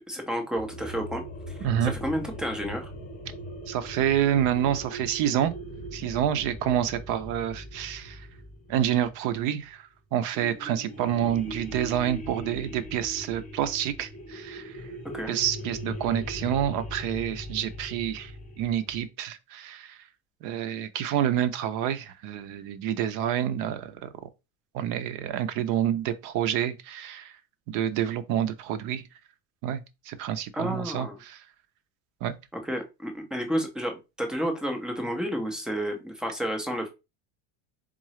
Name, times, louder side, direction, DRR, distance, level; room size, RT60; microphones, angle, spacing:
voice 1, 0.1-1.5 1.8-2.9 15.1-15.3 30.5-31.2 32.5-36.9, equal, ahead, 0.4 m, -31 dB
sound 1, 0.6-9.6 10.3-19.1, equal, 20° left, 0.8 m, -40 dB
voice 2, 1.6-1.9 3.7-5.6 5.9-8.3 8.7-14.8 15.3-18.3 18.6-20.0 20.4-24.1 24.7-27.3 27.7-29.0 29.6-31.4 32.2-32.3, right 10 dB, 50° right, 0.6 m, -28 dB
3.7 x 3.7 x 3.1 m
cardioid pair, 165°, 41 cm